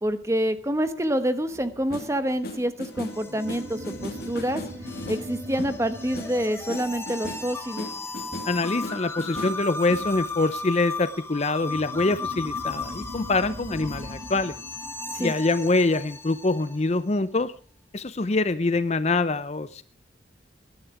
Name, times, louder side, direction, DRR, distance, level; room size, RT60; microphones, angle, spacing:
voice 1, 0.0-4.6 5.1-7.9 15.1-15.3, equal, 15° right, 11 dB, 1.0 m, -27 dB
sound 1, 1.5-10.4, left 1 dB, 55° left, 2.2 m, -38 dB
sound 2, 2.3-16.9, left 3 dB, 15° left, 1.5 m, -36 dB
sound 3, 3.2-8.2 11.6-16.5, right 1 dB, 50° right, 1.7 m, -41 dB
voice 2, 8.5-14.6 15.1-17.5 17.9-19.8, left 3 dB, 35° left, 14 dB, 0.6 m, -25 dB
19.0 x 11.5 x 4.8 m, 0.41 s
head